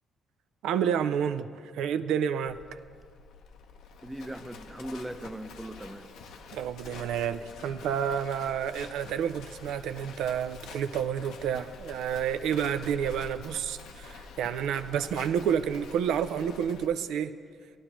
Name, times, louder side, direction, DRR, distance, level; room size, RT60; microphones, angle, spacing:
voice 1, 0.6-2.8 6.5-17.4, right 8 dB, 85° right, 11 dB, 0.3 m, -30 dB
Livestock farm animals working animals, 2.4-16.9, left 4 dB, 85° left, 0.7 m, -47 dB
voice 2, 4.0-6.1, right 1 dB, 10° right, 9 dB, 0.5 m, -39 dB
17.0 x 11.0 x 3.0 m, 2.1 s
cardioid pair, 90°, 0 cm